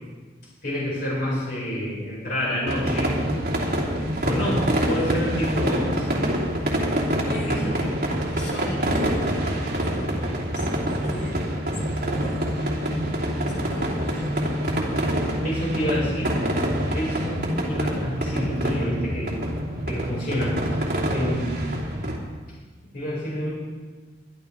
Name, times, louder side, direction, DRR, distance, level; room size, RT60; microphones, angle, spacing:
voice 1, 0.6-3.2 4.2-6.3 7.3-7.9 15.4-16.4 16.9-19.4 19.9-21.6 22.9-23.5, equal, 60° left, -6 dB, 5.6 m, -28 dB
sound 1, 2.7-22.2, equal, 55° right, 3.0 m, -26 dB
voice 2, 6.9-8.0 8.3-9.3 9.8-11.4 11.7-12.9 13.5-14.6 19.1-19.2, left 1 dB, 85° left, -3 dB, 4.6 m, -40 dB
23.0 x 12.0 x 3.5 m, 1.4 s
head